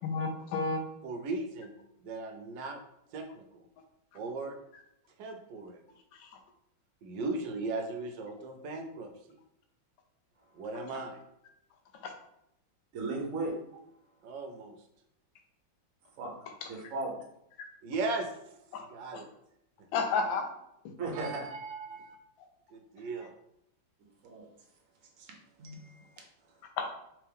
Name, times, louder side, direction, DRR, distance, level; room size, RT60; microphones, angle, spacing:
voice 1, 0.0-0.8 6.1-6.4 12.0-12.1 16.6-16.7 18.7-18.9 19.9-20.5 26.8-26.9, left 4 dB, 75° left, 4 dB, 1.4 m, -31 dB
voice 2, 1.0-2.8 3.1-3.7 4.1-4.6 5.2-5.8 7.0-9.4 10.5-11.2 14.2-14.8 17.8-18.6 18.9-19.3 21.1-22.2 22.7-23.3, right 3 dB, 75° right, 4 dB, 1.3 m, -37 dB
voice 3, 12.9-13.6 16.2-16.3 16.7-17.1 21.0-21.5 24.2-24.5 25.2-25.3 25.6-26.1, right 3 dB, 55° right, 0 dB, 1.0 m, -36 dB
3.5 x 3.3 x 3.4 m, 0.79 s
omnidirectional pair, 2.2 m